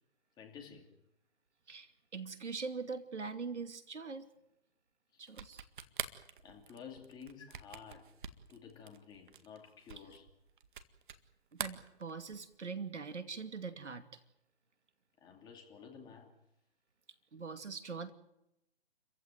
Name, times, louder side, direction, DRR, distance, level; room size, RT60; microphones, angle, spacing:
voice 1, 0.4-0.9 5.1-5.4 6.4-8.1 8.5-10.3 15.2-16.3, left 7 dB, 10° left, 2 dB, 2.8 m, -52 dB
voice 2, 1.7-4.3 5.2-5.7 11.5-14.2 17.3-18.1, right 5 dB, 80° right, 9 dB, 2.6 m, -42 dB
sound 1, 5.3-11.3 11.5-12.5, right 8 dB, 45° right, 1.9 m, -45 dB
30.0 x 15.5 x 9.2 m, 0.86 s
hypercardioid pair, 150°, 35 cm